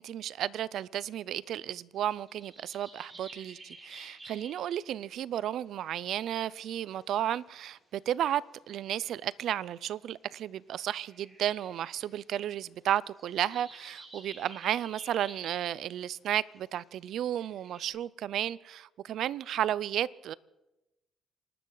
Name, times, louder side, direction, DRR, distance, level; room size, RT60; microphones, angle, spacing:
voice 1, 0.0-20.3, right 11 dB, 75° right, 0.5 m, -33 dB
sound 1, 2.3-4.8 6.3-6.4 6.6-7.6 9.6-9.7 11.0-12.5 13.0-15.8 16.7-16.9 17.4-17.9, right 2 dB, 30° right, 7.7 m, -51 dB
27.5 x 12.5 x 4.0 m
cardioid pair, 90°, 0 cm